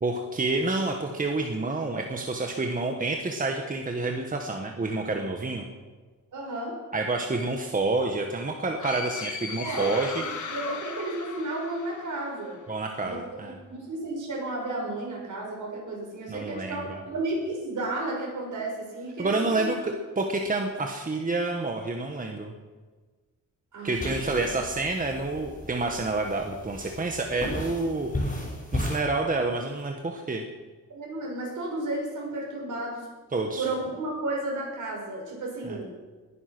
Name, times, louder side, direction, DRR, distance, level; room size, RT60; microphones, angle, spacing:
voice 1, 0.0-5.7 6.9-10.2 12.7-13.5 16.3-17.0 19.2-22.5 23.8-28.5 28.7-30.4 33.3-33.7 35.6-35.8, right 3 dB, 25° right, 3 dB, 1.5 m, -28 dB
voice 2, 6.3-6.8 9.6-12.6 13.0-19.7 23.7-24.4 30.9-33.1 33.5-35.9, right 2 dB, 65° right, -1 dB, 6.1 m, -33 dB
sound 1, 8.8-12.5, left 5 dB, 65° left, 1.9 m, -37 dB
sound 2, 23.9-29.0, left 1 dB, 25° left, 5.4 m, -35 dB
20.5 x 10.5 x 6.1 m, 1.3 s
wide cardioid pair, 140°, 33 cm